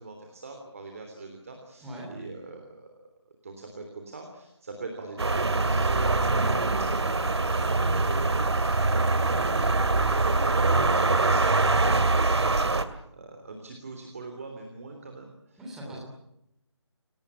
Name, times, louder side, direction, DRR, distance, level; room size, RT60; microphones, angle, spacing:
voice 1, 0.0-3.0 3.4-5.9 7.0-16.0, right 3 dB, 30° right, 4 dB, 3.4 m, -42 dB
sound 1, 5.2-12.8, right 3 dB, 65° right, 2.4 m, -24 dB
voice 2, 15.6-16.0, right 1 dB, ahead, -3 dB, 3.1 m, -39 dB
29.0 x 19.0 x 8.6 m, 0.82 s
figure-of-eight pair, 175°, 15 cm